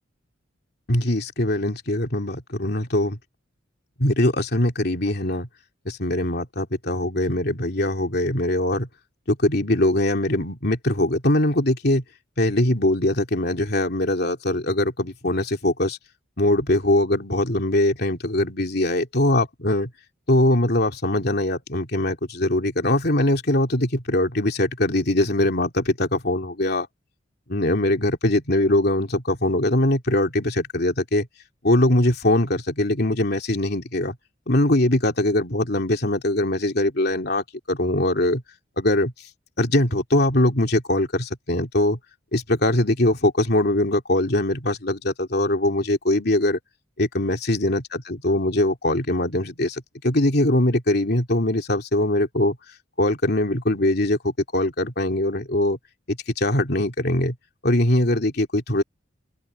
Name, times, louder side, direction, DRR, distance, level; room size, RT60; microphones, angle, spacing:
voice 1, 0.9-3.2 4.0-5.5 5.8-8.9 9.3-12.0 12.4-16.0 16.4-19.9 20.3-26.9 27.5-31.3 31.6-34.2 34.5-38.4 38.8-39.1 39.6-42.0 42.3-46.6 47.0-52.6 53.0-55.8 56.1-57.3 57.6-58.8, left 1 dB, 55° left, 2.9 m, -22 dB
open air
head